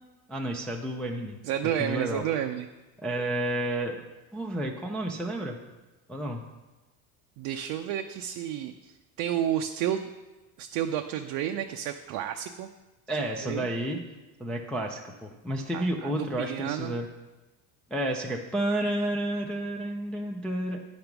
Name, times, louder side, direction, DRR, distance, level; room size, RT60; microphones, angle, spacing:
voice 1, 0.3-1.4 1.8-2.2 3.0-4.0 4.3-5.6 6.1-6.4 13.1-14.0 14.4-17.1 17.9-20.8, right 1 dB, 5° left, 0 dB, 0.3 m, -31 dB
voice 2, 1.4-2.7 7.4-10.1 10.6-12.7 13.4-13.7 15.7-16.9, right 10 dB, 65° right, 5 dB, 0.6 m, -31 dB
9.5 x 5.2 x 5.9 m, 1.1 s
cardioid pair, 155°, 38 cm